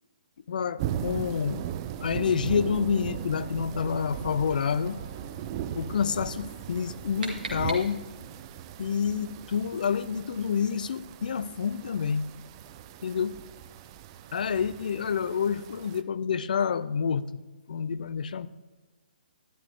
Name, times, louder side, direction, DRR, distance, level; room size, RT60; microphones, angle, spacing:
voice 1, 0.5-1.7 2.0-5.0 5.7-8.0 8.8-12.3 13.0-13.4 14.3-17.3 17.7-18.5, left 6 dB, 55° left, 16 dB, 0.5 m, -28 dB
sound 1, 0.8-16.0, right 10 dB, 30° right, 0.5 m, -39 dB
sound 2, 4.4-11.3, left 1 dB, 30° left, 3.2 m, -55 dB
Mouth Clicking, 6.7-8.4, right 3 dB, 60° right, 2.2 m, -40 dB
11.5 x 11.0 x 3.5 m, 1.2 s
figure-of-eight pair, 135°, 5 cm